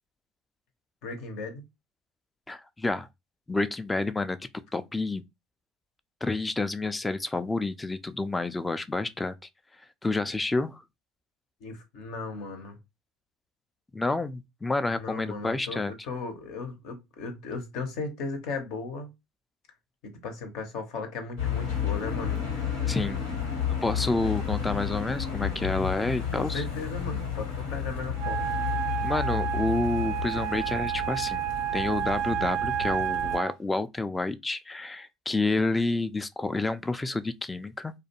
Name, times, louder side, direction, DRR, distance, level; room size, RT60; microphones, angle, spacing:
voice 1, 1.0-1.6 11.6-12.8 14.9-19.1 20.0-22.4 26.3-28.5, left 3 dB, 65° left, 0.7 m, -36 dB
voice 2, 2.5-3.1 3.5-4.4 4.7-5.2 6.2-9.3 10.0-10.8 13.9-15.9 22.9-23.2 23.8-26.6 29.0-31.5 31.7-37.9, left 2 dB, 15° left, 0.3 m, -29 dB
sound 1, 21.4-33.4, left 8 dB, 90° left, 1.0 m, -32 dB
Wind instrument woodwind instrument, 28.2-33.6, right 12 dB, 65° right, 0.4 m, -30 dB
2.3 x 2.2 x 2.8 m
hypercardioid pair, 70°, 0 cm